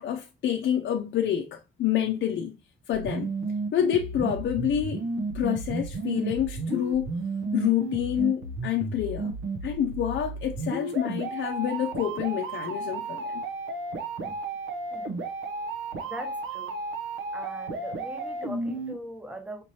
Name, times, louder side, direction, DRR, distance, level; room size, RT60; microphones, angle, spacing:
voice 1, 0.0-2.6 2.9-3.3 3.7-5.1 5.3-7.1 7.5-9.4 9.6-13.4, left 10 dB, 65° left, 0.6 m, -27 dB
sound 1, 2.9-18.9, right 3 dB, 80° right, 0.9 m, -33 dB
voice 2, 16.0-16.7 17.3-19.6, equal, 5° right, 1.0 m, -41 dB
5.0 x 3.0 x 2.7 m
cardioid pair, 90°, 20 cm